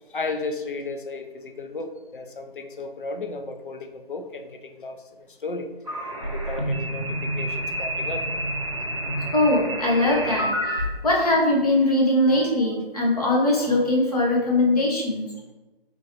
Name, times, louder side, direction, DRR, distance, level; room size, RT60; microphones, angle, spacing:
voice 1, 0.1-5.0 5.4-5.7 6.5-8.3, left 3 dB, 55° left, 6 dB, 0.5 m, -34 dB
sound 1, 5.9-10.9, right 1 dB, 35° right, 0.5 m, -28 dB
voice 2, 9.3-15.2, left 1 dB, 40° left, -3 dB, 0.9 m, -21 dB
3.8 x 2.9 x 3.0 m, 1.1 s
figure-of-eight pair, 165°, 30 cm